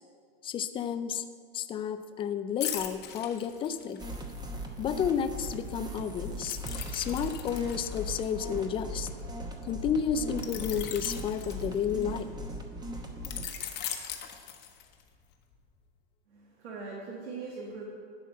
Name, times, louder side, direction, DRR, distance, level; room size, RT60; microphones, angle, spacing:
voice 1, 0.4-1.2 1.5-4.0 4.8-6.6 6.9-9.1 9.6-12.3, left 7 dB, 20° left, 11 dB, 0.3 m, -31 dB
sound 1, 2.6-4.1 6.4-9.2 10.4-12.2 13.2-15.1 15.5-15.7, left 9 dB, 35° left, 1.0 m, -39 dB
sound 2, 4.0-13.5, equal, 15° right, 1.0 m, -39 dB
voice 2, 16.3-17.8, right 4 dB, 85° right, -3 dB, 1.8 m, -41 dB
11.0 x 4.3 x 7.3 m, 2.1 s
supercardioid pair, 125°, 31 cm